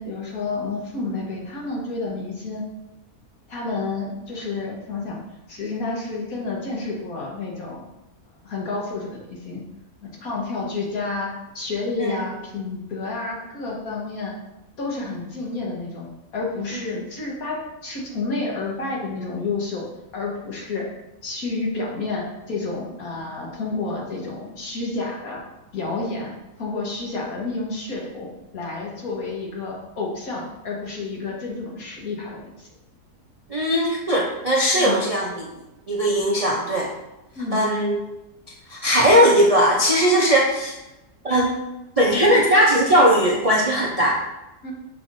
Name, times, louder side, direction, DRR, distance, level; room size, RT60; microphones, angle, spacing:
voice 1, 0.0-2.6 3.5-5.2 5.5-7.8 8.4-9.6 10.0-11.3 11.5-14.3 14.8-16.1 16.3-19.8 20.1-20.9 21.2-25.4 25.7-26.3 26.6-32.7 34.8-35.0 37.4-37.6 42.1-42.3 44.6-44.7, left 3 dB, 65° left, -3 dB, 1.8 m, -30 dB
voice 2, 33.5-35.5 35.9-36.9 37.5-38.0 38.7-40.7 41.2-41.6 42.0-44.2, equal, 40° right, -3 dB, 0.5 m, -18 dB
6.6 x 5.7 x 2.7 m, 0.96 s
omnidirectional pair, 1.7 m